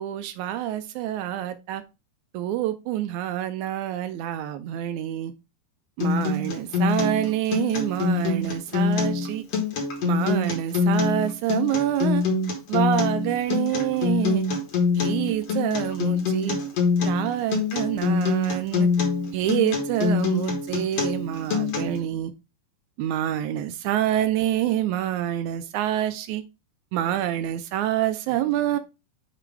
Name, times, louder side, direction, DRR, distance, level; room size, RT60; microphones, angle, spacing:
voice 1, 0.0-1.8 2.3-5.3 6.0-9.4 10.0-12.2 12.7-14.5 15.0-16.6 17.0-18.9 19.3-22.3 23.0-26.4 26.9-28.8, right 12 dB, 85° right, 11 dB, 2.0 m, -26 dB
Acoustic guitar, 6.0-22.0, left 4 dB, 60° left, 2.5 m, -25 dB
7.1 x 3.3 x 4.7 m, 0.26 s
omnidirectional pair, 3.4 m